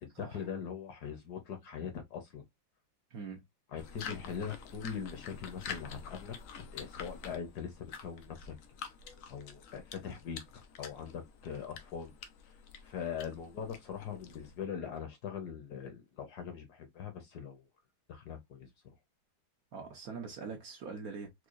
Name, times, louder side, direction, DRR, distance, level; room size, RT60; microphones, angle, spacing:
voice 1, 0.0-2.4 3.7-8.6 9.3-12.1 12.8-17.6 18.1-18.9, left 7 dB, 60° left, 1.2 m, -42 dB
voice 2, 3.1-3.4 19.7-21.3, right 5 dB, 60° right, 1.0 m, -43 dB
sound 1, 3.8-14.6, left 6 dB, 85° left, 0.7 m, -48 dB
4.6 x 2.3 x 2.4 m
omnidirectional pair, 2.1 m